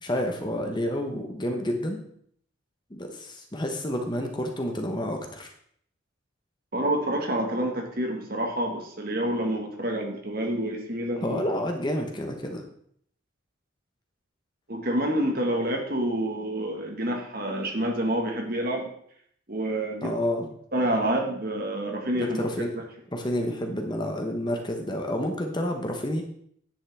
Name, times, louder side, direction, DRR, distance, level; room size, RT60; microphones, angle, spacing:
voice 1, 0.0-2.0 2.9-5.5 11.2-12.6 20.0-20.5 22.1-22.8 23.1-26.2, left 1 dB, 20° left, 3 dB, 1.0 m, -29 dB
voice 2, 6.7-11.4 14.7-18.9 19.5-20.1 20.7-22.5, right 1 dB, 45° right, 2 dB, 1.7 m, -28 dB
10.0 x 8.6 x 3.6 m, 0.64 s
head